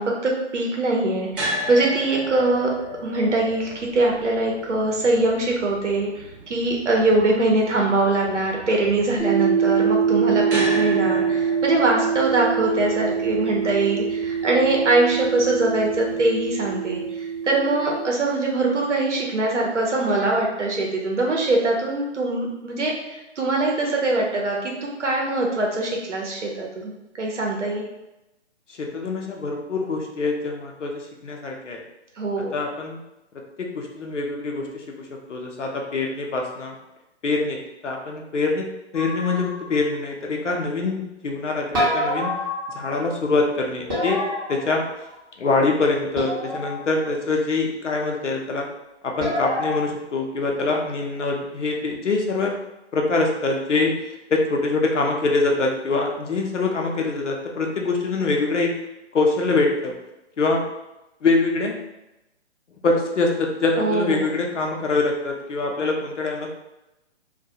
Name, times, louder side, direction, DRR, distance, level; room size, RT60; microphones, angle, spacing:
voice 1, 0.0-2.7 3.0-23.1 23.4-26.9 27.2-27.8 32.2-32.6 63.8-64.3, right 2 dB, 85° right, -1 dB, 0.7 m, -22 dB
sound 1, 1.3-17.5, equal, 45° right, 0.8 m, -36 dB
sound 2, 9.2-18.0, right 6 dB, 25° left, 0.6 m, -24 dB
voice 2, 28.8-31.8 32.5-33.0 33.6-36.7 37.2-37.6 37.8-42.3 42.7-44.2 44.5-44.8 45.4-48.7 49.0-52.5 52.9-53.9 54.3-58.7 59.1-59.9 60.4-60.6 61.2-61.8 62.8-66.5, left 3 dB, 85° left, 1 dB, 0.6 m, -24 dB
sound 3, 38.9-39.9 41.7-43.1 43.9-45.2 46.1-47.0 49.2-49.8, left 1 dB, 20° right, 0.5 m, -27 dB
2.2 x 2.2 x 2.7 m, 0.95 s
figure-of-eight pair, 145°, 35 cm